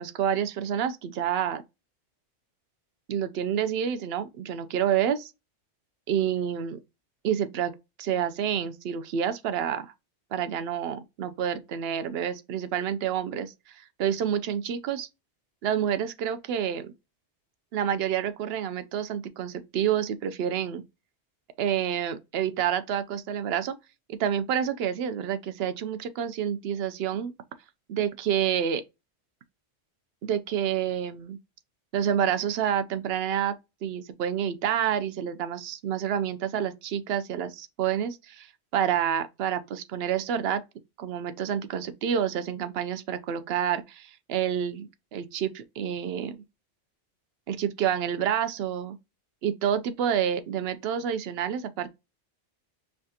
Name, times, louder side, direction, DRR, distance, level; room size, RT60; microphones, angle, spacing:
voice 1, 0.0-1.6 3.1-5.3 6.1-6.8 7.2-7.7 8.0-9.9 10.3-15.1 15.6-16.9 17.7-20.8 21.6-23.7 24.1-27.3 27.9-28.8 30.2-31.4 31.9-33.5 33.8-40.6 41.0-46.4 47.5-49.0 49.4-51.9, right 9 dB, 65° right, 0.8 m, -28 dB
5.5 x 2.4 x 2.7 m
omnidirectional pair, 1.2 m